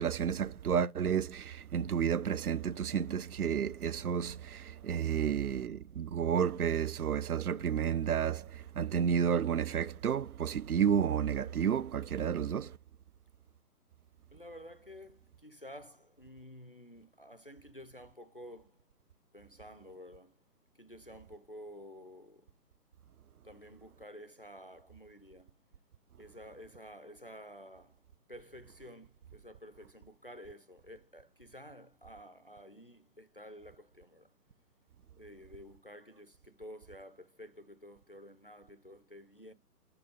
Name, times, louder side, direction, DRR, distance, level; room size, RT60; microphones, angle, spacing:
voice 1, 0.0-12.8, right 8 dB, 65° right, 0.6 m, -31 dB
voice 2, 14.3-18.8 19.3-20.4 20.8-22.5 23.4-25.6 26.2-28.0 28.3-34.3 35.2-39.5, equal, 40° left, 0.4 m, -51 dB
6.9 x 3.5 x 5.2 m
figure-of-eight pair, 145°, 48 cm